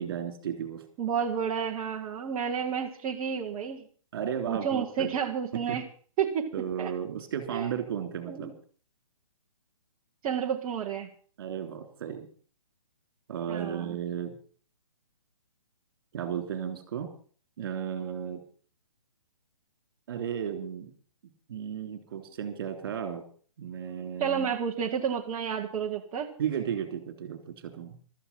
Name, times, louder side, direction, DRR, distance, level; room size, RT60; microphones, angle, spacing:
voice 1, 0.0-0.8 4.1-5.1 5.5-5.8 6.5-8.5 11.4-12.3 13.3-14.3 16.1-17.1 17.6-18.4 20.1-20.9 21.5-23.2 23.6-24.5 26.4-28.0, right 8 dB, 40° right, 7 dB, 3.3 m, -34 dB
voice 2, 1.0-3.8 4.5-5.8 6.2-6.5 6.8-6.9 7.5-7.7 8.3-8.5 10.2-11.1 13.5-14.0 24.2-26.3, right 7 dB, 15° right, -1 dB, 1.0 m, -30 dB
15.0 x 13.5 x 5.6 m, 0.44 s
hypercardioid pair, 170°, 18 cm